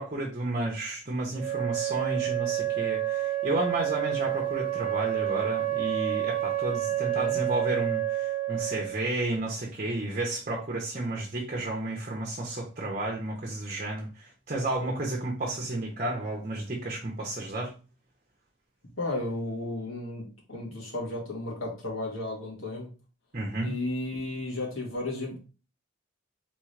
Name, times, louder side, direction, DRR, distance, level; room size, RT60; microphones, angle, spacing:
voice 1, 0.0-17.7 23.3-23.7, right 2 dB, 40° right, -1 dB, 0.8 m, -32 dB
Wind instrument woodwind instrument, 1.4-9.1, right 13 dB, 10° right, 0.7 m, -29 dB
voice 2, 19.0-22.9 23.6-25.4, left 2 dB, 85° left, -2 dB, 2.0 m, -34 dB
3.8 x 3.7 x 3.2 m, 0.34 s
head